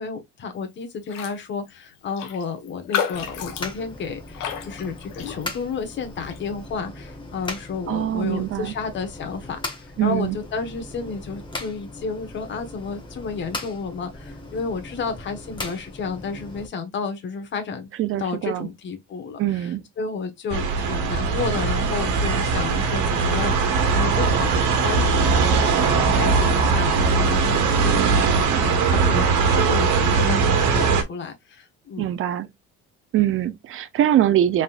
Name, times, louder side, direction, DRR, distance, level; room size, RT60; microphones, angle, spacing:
voice 1, 0.0-17.9 18.2-32.1, left 5 dB, 35° left, 1.2 m, -31 dB
Raindrop, 1.1-1.4 1.7-1.8 2.2-5.7 6.2-6.4, left 9 dB, 80° left, 1.1 m, -31 dB
sound 1, 3.1-16.7, left 2 dB, 15° left, 1.1 m, -38 dB
voice 2, 7.9-8.7 10.0-10.4 18.0-18.7 19.4-19.8 32.0-32.5 33.1-34.6, right 12 dB, 40° right, 0.6 m, -22 dB
sound 2, 20.5-31.0, right 5 dB, 70° right, 1.4 m, -20 dB
4.1 x 3.7 x 2.5 m
cardioid pair, 130°, 31 cm